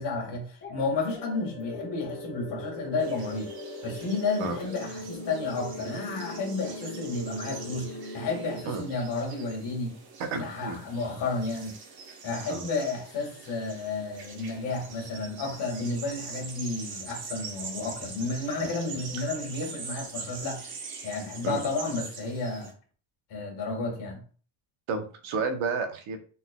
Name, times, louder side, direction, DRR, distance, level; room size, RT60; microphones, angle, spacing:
voice 1, 0.0-3.5 3.8-10.0 10.3-11.7 12.2-20.6 21.0-22.7 23.3-24.2, left 3 dB, 60° left, 0 dB, 1.8 m, -32 dB
sound 1, 0.6-8.6, left 1 dB, 25° left, 1.0 m, -40 dB
sound 2, 3.0-22.7, right 4 dB, 50° right, 1.0 m, -43 dB
voice 2, 10.2-10.8 12.5-12.7 21.4-21.6 24.9-26.2, right 4 dB, 85° right, 6 dB, 1.0 m, -31 dB
4.1 x 3.9 x 2.2 m, 0.41 s
cardioid pair, 165°, 48 cm